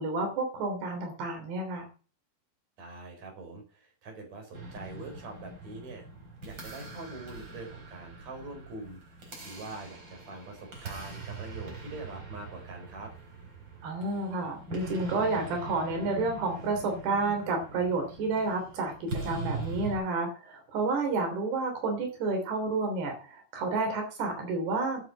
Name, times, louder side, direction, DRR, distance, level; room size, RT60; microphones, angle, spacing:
voice 1, 0.0-1.9 13.8-25.0, right 3 dB, 85° right, 3 dB, 5.2 m, -30 dB
voice 2, 2.8-6.0 6.4-9.0 9.4-13.1, right 2 dB, 45° right, 2 dB, 5.4 m, -43 dB
sound 1, 4.5-20.0, right 3 dB, 30° right, 4.6 m, -42 dB
10.5 x 7.4 x 8.4 m, 0.37 s
omnidirectional pair, 4.6 m